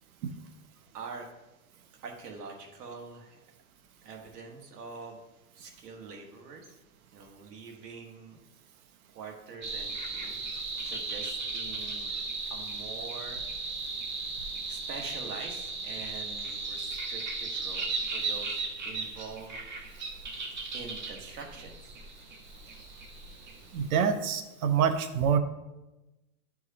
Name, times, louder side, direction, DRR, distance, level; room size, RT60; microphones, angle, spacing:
voice 1, 0.9-1.3 2.0-3.4 4.0-5.2 5.5-6.7 7.1-8.4 9.1-10.4 10.8-12.1 12.5-13.4 14.7-19.6 20.7-21.9, right 4 dB, 80° right, 1 dB, 1.5 m, -44 dB
sound 1, 9.6-24.0, right 3 dB, 35° right, 0.4 m, -36 dB
voice 2, 23.7-25.4, right 7 dB, 65° right, 9 dB, 0.8 m, -26 dB
9.7 x 4.7 x 2.8 m, 1.0 s
supercardioid pair, 175°, 46 cm